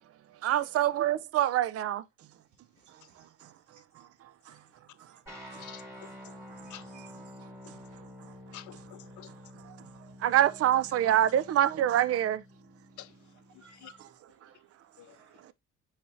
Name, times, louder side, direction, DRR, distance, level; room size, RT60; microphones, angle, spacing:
voice 1, 0.4-2.0 10.2-12.4, right 11 dB, 50° right, 0.5 m, -25 dB
voice 2, 2.7-3.3 3.7-3.8 4.4-5.2 6.1-7.1 7.7-8.0 9.4-9.5 9.8-10.2 13.5-15.5, right 6 dB, 70° right, 4.1 m, -63 dB
sound 1, 5.3-14.1, equal, 10° right, 4.3 m, -49 dB
voice 3, 5.6-6.1 6.7-6.9 7.6-7.7 8.5-9.3 13.0-13.1 13.8-13.9 15.0-15.2, left 13 dB, 75° left, 0.8 m, -48 dB
6.7 x 5.7 x 2.6 m
cardioid pair, 90°, 30 cm